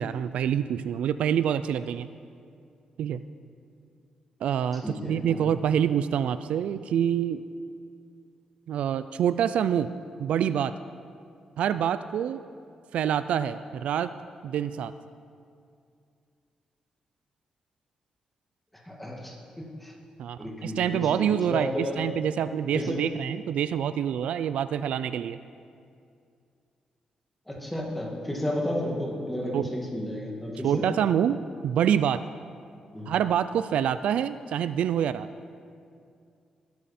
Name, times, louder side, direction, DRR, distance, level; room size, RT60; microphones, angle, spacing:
voice 1, 0.0-2.1 3.0-3.2 4.4-7.4 8.7-9.9 10.2-10.7 11.6-12.4 12.9-14.1 14.4-14.9 20.2-25.4 29.5-29.7 30.6-31.4 31.6-32.2 33.1-35.3, right 9 dB, 85° right, 13 dB, 0.4 m, -26 dB
voice 2, 4.8-5.5 18.9-19.9 20.4-22.0 22.7-23.0 27.5-30.9 32.9-33.1, left 1 dB, 5° left, -1 dB, 2.2 m, -32 dB
19.5 x 10.5 x 4.3 m, 2.4 s
cardioid pair, 130°, 2 cm